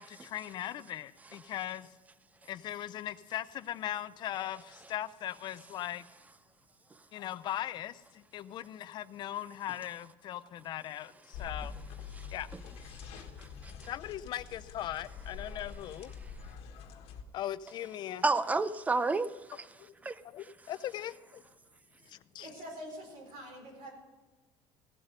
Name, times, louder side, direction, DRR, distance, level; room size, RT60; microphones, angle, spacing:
voice 1, 0.0-1.9 2.5-6.0 7.1-11.7 12.3-12.5 13.9-16.1 17.3-18.2 19.8-19.9 20.3-21.4 22.1-22.5, left 12 dB, 45° left, 0.4 m, -39 dB
sound 1, 11.3-17.2, left 6 dB, 65° left, 1.4 m, -45 dB
voice 2, 12.1-12.6 12.9-13.9 16.2-16.4 18.2-20.7, right 3 dB, 15° right, 0.4 m, -34 dB
voice 3, 22.1-23.9, equal, 85° right, 4.6 m, -46 dB
16.5 x 8.0 x 5.2 m
cardioid pair, 150°, 11 cm